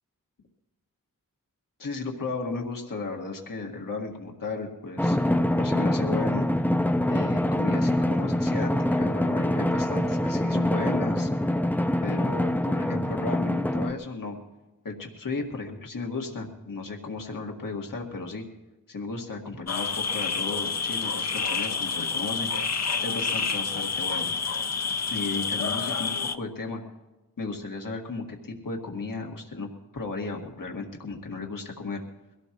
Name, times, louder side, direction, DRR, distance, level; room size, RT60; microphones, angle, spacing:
voice 1, 1.8-5.2 5.6-6.5 7.1-11.3 12.0-14.4 14.8-18.4 18.9-22.5 23.0-24.3 25.1-26.8 27.4-32.0, left 3 dB, 75° left, 1 dB, 2.1 m, -34 dB
Drum, 5.0-13.9, left 1 dB, 5° left, 0.6 m, -25 dB
sound 1, 19.7-26.4, left 5 dB, 50° left, 0.8 m, -28 dB
23.0 x 17.0 x 3.1 m, 1.1 s
wide cardioid pair, 60°, 33 cm